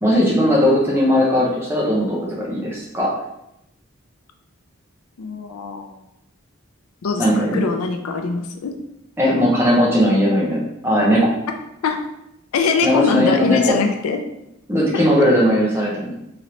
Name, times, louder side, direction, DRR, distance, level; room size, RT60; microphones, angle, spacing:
voice 1, 0.0-3.1 7.2-7.6 9.2-11.3 12.8-13.8 14.7-16.1, equal, 10° right, -5 dB, 0.7 m, -18 dB
voice 2, 5.2-6.0 7.0-8.8 11.8-12.1 12.5-14.2 14.9-15.3, left 4 dB, 85° left, 5 dB, 0.4 m, -23 dB
3.0 x 2.7 x 2.9 m, 0.83 s
head